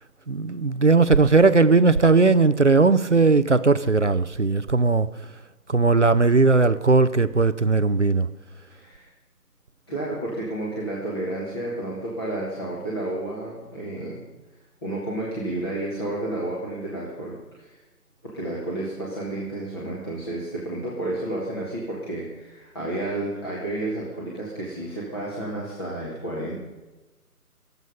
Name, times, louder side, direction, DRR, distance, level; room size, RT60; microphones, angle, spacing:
voice 1, 0.3-5.1 5.7-8.3, right 3 dB, 50° right, 0.5 m, -18 dB
voice 2, 8.7-9.1 9.9-14.2 14.8-17.8 18.2-26.6, right 1 dB, 15° left, 1.7 m, -31 dB
23.0 x 8.1 x 5.4 m
figure-of-eight pair, 170°, 47 cm